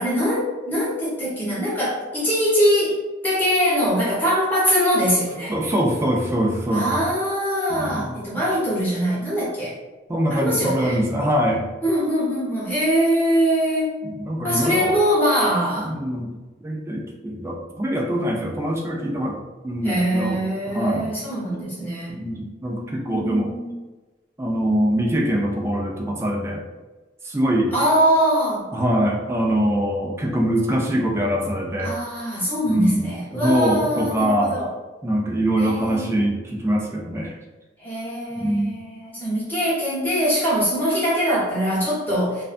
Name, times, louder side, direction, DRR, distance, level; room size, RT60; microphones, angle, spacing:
voice 1, 0.0-3.0 3.2-5.5 6.7-9.7 10.3-11.0 11.8-13.9 14.4-15.9 19.8-22.2 23.1-23.7 27.7-28.7 31.8-34.7 35.6-36.2 37.8-42.4, equal, 10° left, -9 dB, 0.9 m, -22 dB
voice 2, 5.5-7.0 7.7-8.1 10.1-11.7 14.0-14.9 15.8-16.3 16.6-20.4 20.7-21.1 22.1-23.5 24.4-26.6 27.2-27.7 28.7-31.9 32.6-34.6 35.0-37.4 38.4-38.8, equal, 15° right, -1 dB, 0.3 m, -23 dB
2.5 x 2.1 x 2.5 m, 1.2 s
head